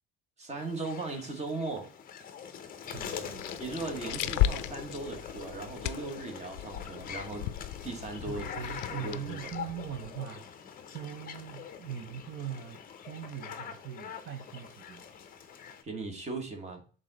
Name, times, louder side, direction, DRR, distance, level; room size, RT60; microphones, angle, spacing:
voice 1, 0.4-1.9 3.6-7.5 7.8-8.4 8.9-9.5 15.8-16.8, right 3 dB, 20° right, 1.2 m, -38 dB
sound 1, 0.6-15.8, left 7 dB, 30° left, 0.7 m, -44 dB
sound 2, 2.9-10.2, left 13 dB, 75° left, 0.5 m, -36 dB
voice 2, 2.9-3.6 4.1-4.5 8.2-10.5 10.9-15.1, right 9 dB, 40° right, 0.6 m, -41 dB
6.8 x 3.8 x 3.8 m
cardioid pair, 170°, 31 cm